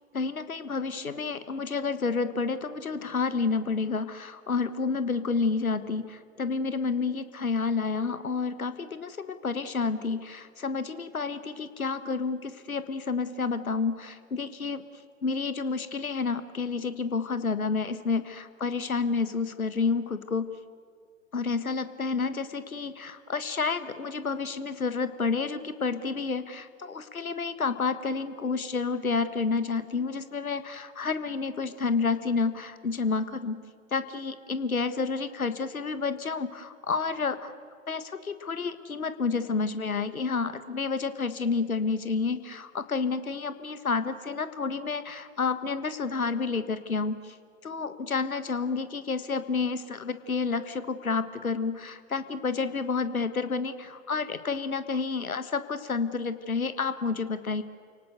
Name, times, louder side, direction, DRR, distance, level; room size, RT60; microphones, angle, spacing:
voice 1, 0.1-14.8 15.2-20.5 21.3-33.6 33.9-37.5 37.9-47.4 47.6-57.6, left 4 dB, 80° left, 12 dB, 1.5 m, -30 dB
29.0 x 18.5 x 8.1 m, 2.3 s
figure-of-eight pair, 110°, 42 cm